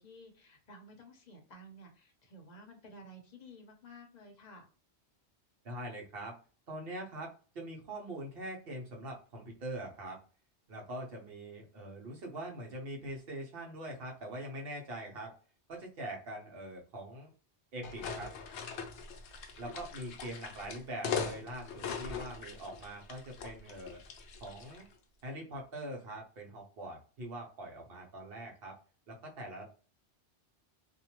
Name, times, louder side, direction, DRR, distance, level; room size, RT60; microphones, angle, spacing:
voice 1, 0.0-4.6, equal, 45° left, 3 dB, 0.7 m, -53 dB
voice 2, 5.6-6.4 6.7-10.2 10.7-15.3 15.7-17.3 17.7-18.3 19.6-24.0 24.4-24.9 25.2-28.8 29.1-29.7, right 1 dB, 60° right, 0 dB, 1.0 m, -43 dB
sound 1, 17.8-24.9, left 6 dB, 80° left, 0.9 m, -41 dB
2.6 x 2.2 x 2.9 m, 0.38 s
omnidirectional pair, 1.1 m